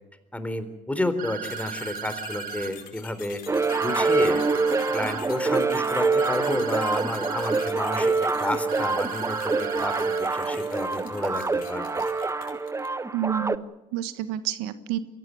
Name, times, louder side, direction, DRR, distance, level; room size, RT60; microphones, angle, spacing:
voice 1, 0.3-3.4 3.8-4.4 4.9-8.1 8.4-12.0, left 1 dB, 10° left, 10 dB, 3.8 m, -31 dB
sound 1, 1.2-2.7 3.7-5.2 6.2-7.7 8.7-10.2, right 9 dB, 55° right, 3.0 m, -36 dB
sound 2, 1.4-13.0, left 9 dB, 60° left, 5.0 m, -45 dB
sound 3, 3.5-13.6, right 3 dB, 15° right, 1.1 m, -25 dB
voice 2, 13.1-15.0, right 11 dB, 75° right, 12 dB, 1.4 m, -29 dB
23.5 x 16.5 x 9.4 m, 1.1 s
hypercardioid pair, 70°, 17 cm